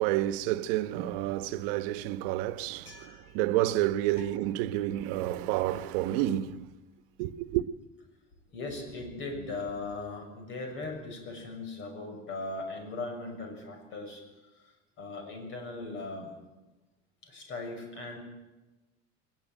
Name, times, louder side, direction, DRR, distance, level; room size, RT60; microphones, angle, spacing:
voice 1, 0.0-6.7 7.2-7.6, right 14 dB, 80° right, 1.1 m, -29 dB
voice 2, 2.8-3.4 4.2-4.3 8.5-16.3 17.2-18.2, left 3 dB, 40° left, 6.6 m, -39 dB
21.0 x 20.0 x 9.2 m
cardioid pair, 165°, 29 cm